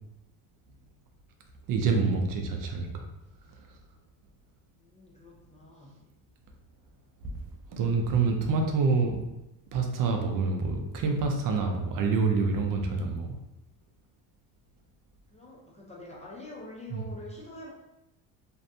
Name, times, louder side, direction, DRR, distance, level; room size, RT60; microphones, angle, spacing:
voice 1, 1.7-3.0 7.7-9.2 9.7-13.3 16.9-17.0, right 4 dB, 50° right, 3 dB, 0.5 m, -27 dB
voice 2, 4.8-6.0 15.3-17.7, left 2 dB, 15° left, -4 dB, 0.4 m, -46 dB
2.6 x 2.1 x 2.6 m, 0.93 s
cardioid pair, 110°, 43 cm